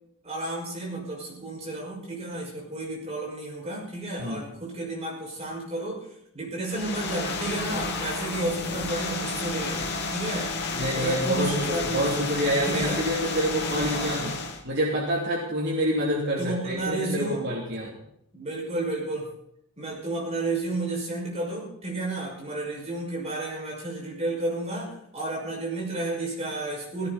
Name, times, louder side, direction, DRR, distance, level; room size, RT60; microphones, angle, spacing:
voice 1, 0.2-6.0 6.3-10.5 10.9-13.0 13.8-14.2 16.4-17.5 18.3-19.3 19.8-27.1, right 2 dB, 30° right, -2 dB, 5.7 m, -32 dB
sound 1, 6.7-14.6, left 3 dB, 50° left, 2.4 m, -31 dB
voice 2, 10.8-14.4 14.6-18.0, equal, 50° right, -4 dB, 3.1 m, -27 dB
17.0 x 17.0 x 4.2 m, 0.74 s
head